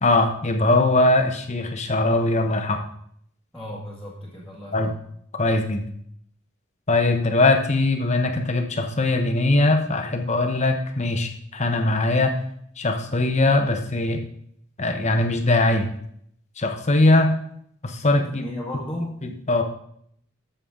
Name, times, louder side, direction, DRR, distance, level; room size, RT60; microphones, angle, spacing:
voice 1, 0.0-2.8 4.7-4.9 5.4-5.8 6.9-12.3 12.8-14.2 14.8-15.9 16.6-17.3 17.8-18.4 19.2-19.6, left 2 dB, 35° left, 5 dB, 1.0 m, -21 dB
voice 2, 3.5-5.0 18.2-19.2, left 1 dB, 5° left, -8 dB, 1.7 m, -34 dB
12.5 x 7.0 x 3.7 m, 0.66 s
head